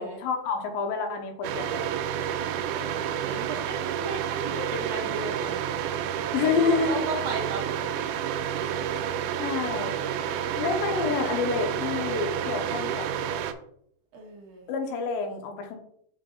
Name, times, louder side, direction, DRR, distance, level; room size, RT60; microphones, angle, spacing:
voice 1, 0.0-1.9 6.3-7.0 9.4-10.0 10.6-13.1 14.7-15.8, left 5 dB, 90° left, 4 dB, 2.7 m, -28 dB
sound 1, 1.4-13.5, right 9 dB, 80° right, 1.9 m, -30 dB
voice 2, 2.4-5.6 6.3-7.6 8.0-8.1 14.1-14.6, right 3 dB, 55° right, 1 dB, 1.5 m, -36 dB
5.7 x 5.2 x 3.9 m, 0.68 s
omnidirectional pair, 4.1 m